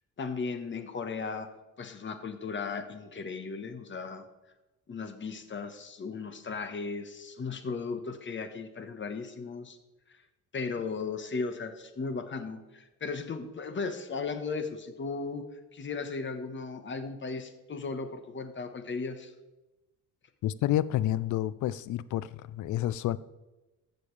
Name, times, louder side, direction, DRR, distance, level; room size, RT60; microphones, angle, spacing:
voice 1, 0.2-1.5 1.8-4.2 4.9-9.8 10.1-10.2 10.5-19.3, left 4 dB, 40° left, 1.3 m, -36 dB
voice 2, 20.4-23.2, left 13 dB, 75° left, 0.5 m, -29 dB
15.0 x 6.9 x 3.3 m
cardioid pair, 90°, 30 cm